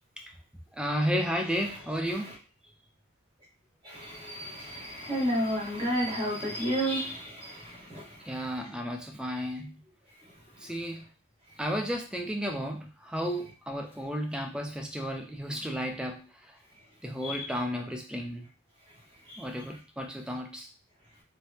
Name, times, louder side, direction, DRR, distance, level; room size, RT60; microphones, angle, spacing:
voice 1, 0.7-2.3 8.2-9.8 10.6-11.0 11.6-16.6 17.0-18.5 19.4-20.7, equal, 5° right, 0.4 m, -33 dB
voice 2, 3.8-8.3 10.6-10.7 17.2-17.5 19.3-19.4, equal, 25° right, 1.3 m, -32 dB
3.2 x 2.1 x 2.7 m
head